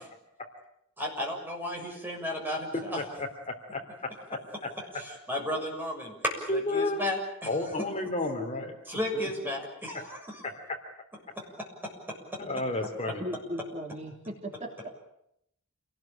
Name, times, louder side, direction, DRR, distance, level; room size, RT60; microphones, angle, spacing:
voice 1, 1.0-3.0 4.9-7.6 8.9-10.4, left 1 dB, 10° right, 0 dB, 6.9 m, -33 dB
voice 2, 2.9-3.8 4.3-4.4 6.5-7.1 7.4-8.8 10.4-10.6 12.4-13.2, left 2 dB, 30° left, 4 dB, 3.3 m, -31 dB
voice 3, 13.2-14.9, equal, 30° right, 2 dB, 3.1 m, -37 dB
28.0 x 19.5 x 9.0 m, 0.78 s
head